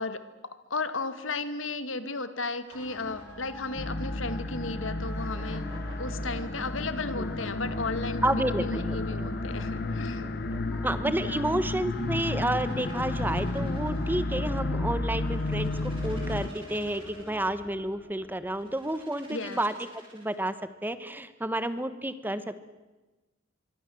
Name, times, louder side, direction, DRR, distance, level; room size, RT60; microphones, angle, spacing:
voice 1, 0.0-5.7 6.0-10.2 11.2-11.5 19.3-19.6, left 3 dB, 80° left, 12 dB, 2.0 m, -34 dB
sound 1, 2.6-3.5 4.5-7.0 7.8-11.2 12.0-14.4 15.1-17.6 18.5-20.5, right 2 dB, 25° right, 7.9 m, -52 dB
sound 2, 2.7-18.9, left 2 dB, 10° left, 7.1 m, -44 dB
sound 3, 3.8-16.5, left 2 dB, 55° left, 1.3 m, -32 dB
voice 2, 8.2-9.0 10.8-19.7 20.1-20.5 20.8-22.7, right 1 dB, 10° right, 12 dB, 1.2 m, -30 dB
25.0 x 24.0 x 7.8 m, 1.1 s
head